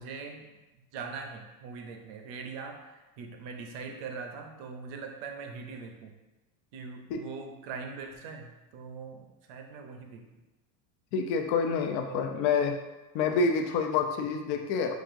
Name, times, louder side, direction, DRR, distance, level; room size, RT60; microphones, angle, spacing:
voice 1, 0.0-6.2 6.7-10.3 12.1-12.2, right 5 dB, 55° right, 4 dB, 0.7 m, -42 dB
voice 2, 11.1-12.7 13.1-15.0, left 5 dB, 50° left, 5 dB, 0.6 m, -27 dB
6.1 x 2.5 x 2.6 m, 1.1 s
supercardioid pair, 145°, 46 cm